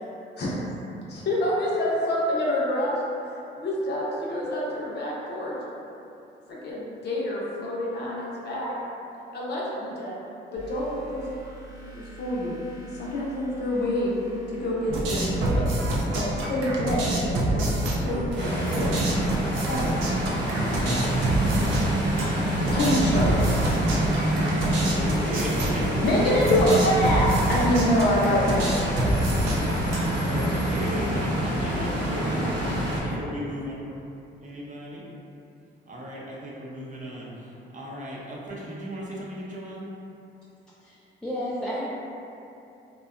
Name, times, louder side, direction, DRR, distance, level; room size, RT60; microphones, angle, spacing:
voice 1, 0.4-0.7 1.1-3.0 3.3-5.6 6.5-8.7 9.3-10.2 10.5-12.5 12.9-14.1 14.5-15.7 16.1-19.0 19.4-20.1 20.6-20.7 22.7-23.6 25.8-29.2 29.5-30.0 30.4-30.6 32.6-32.7 33.0-33.1, left 1 dB, 55° left, -5 dB, 0.6 m, -27 dB
sound 1, 10.6-24.3, right 4 dB, 15° right, 0.9 m, -46 dB
sound 2, 14.9-30.4, right 1 dB, 85° right, 0.5 m, -27 dB
sound 3, 18.4-33.0, right 1 dB, 65° right, 0.9 m, -26 dB
voice 2, 24.9-26.7 30.1-33.9 34.4-35.0 35.9-39.9, equal, 40° right, -5 dB, 0.6 m, -36 dB
voice 3, 40.8-41.9, equal, 5° left, -9 dB, 0.3 m, -32 dB
2.7 x 2.2 x 2.4 m, 2.7 s
cardioid pair, 90°, 20 cm